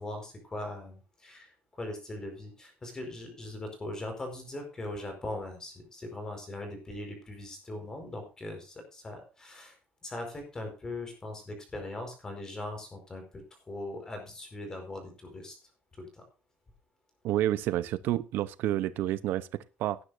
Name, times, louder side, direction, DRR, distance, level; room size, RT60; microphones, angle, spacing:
voice 1, 0.0-9.8 10.0-15.6 15.9-16.2, left 1 dB, 20° left, 4.7 m, -40 dB
voice 2, 17.2-20.0, right 13 dB, 75° right, 0.8 m, -29 dB
18.5 x 9.7 x 2.6 m
cardioid pair, 175°, 3 cm